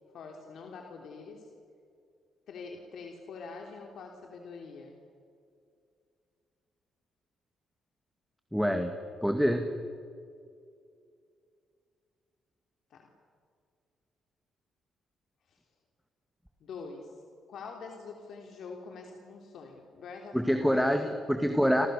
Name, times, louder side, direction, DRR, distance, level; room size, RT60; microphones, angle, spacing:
voice 1, 0.1-1.5 2.5-5.0 12.9-13.1 15.5-15.6 16.6-17.1 17.5-21.0, left 4 dB, 70° left, 2 dB, 3.3 m, -45 dB
voice 2, 8.5-8.9 9.2-9.6 20.3-21.9, equal, ahead, 6 dB, 2.0 m, -26 dB
30.0 x 27.0 x 6.9 m, 2.4 s
cardioid pair, 90°, 0 cm